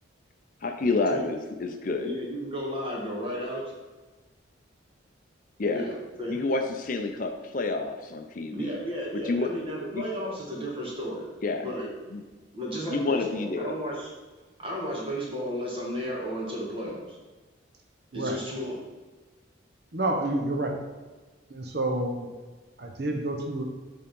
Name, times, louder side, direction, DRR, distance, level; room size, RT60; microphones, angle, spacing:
voice 1, 0.6-2.1 5.6-5.9 6.3-8.8 9.1-9.5 9.9-10.0 11.4-11.7 12.1-12.2 12.9-13.7, left 3 dB, 45° left, 5 dB, 0.5 m, -29 dB
voice 2, 2.0-3.7 5.7-6.4 8.5-11.2 11.5-11.9 12.5-14.1 14.6-17.2 18.1-18.8, equal, 25° right, -2 dB, 1.5 m, -33 dB
voice 3, 19.9-20.8 21.5-22.3 22.8-23.6, right 1 dB, 55° right, 2 dB, 0.8 m, -29 dB
7.0 x 3.6 x 5.3 m, 1.3 s
head